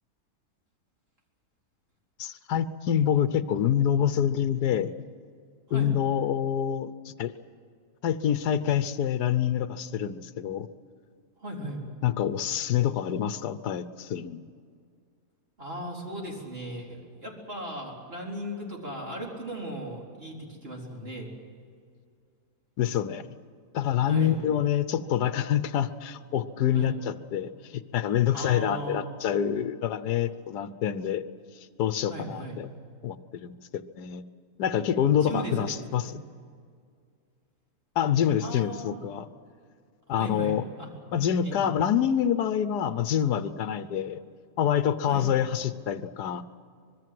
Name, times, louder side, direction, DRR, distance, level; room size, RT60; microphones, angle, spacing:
voice 1, 2.2-4.9 5.7-7.3 8.0-10.7 12.0-14.4 22.8-23.3 23.7-31.2 31.8-32.7 33.0-34.2 34.6-36.1 38.0-39.3 40.1-40.6 41.1-44.2 44.6-46.4, left 9 dB, 80° left, 12 dB, 1.4 m, -26 dB
voice 2, 11.4-11.8 15.6-21.3 24.0-24.4 26.7-26.9 28.3-29.1 32.1-32.6 35.1-36.1 38.4-39.1 40.1-40.9 41.4-41.6 45.1-45.3, right 1 dB, 35° right, -2 dB, 4.4 m, -37 dB
25.5 x 21.0 x 7.7 m, 2.2 s
omnidirectional pair, 1.7 m